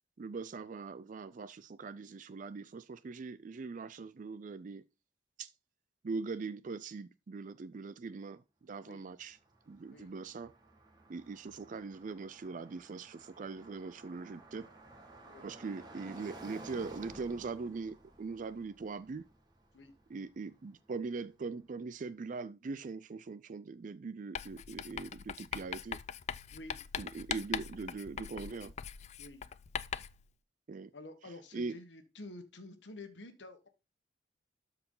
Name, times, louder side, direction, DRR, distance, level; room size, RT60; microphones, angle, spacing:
voice 1, 0.2-4.8 5.4-5.5 6.0-9.4 9.7-10.5 11.1-14.7 15.4-19.3 20.1-26.0 27.0-28.7 30.7-30.9 31.5-31.8, right 4 dB, 45° right, 0.4 m, -41 dB
Car passing by, 9.1-21.1, right 2 dB, 20° right, 1.7 m, -54 dB
Writing, 24.3-30.2, left 8 dB, 35° left, 0.3 m, -41 dB
voice 2, 26.5-26.8 29.2-29.4 30.9-33.7, left 2 dB, 75° left, 1.3 m, -50 dB
12.5 x 4.7 x 3.8 m
head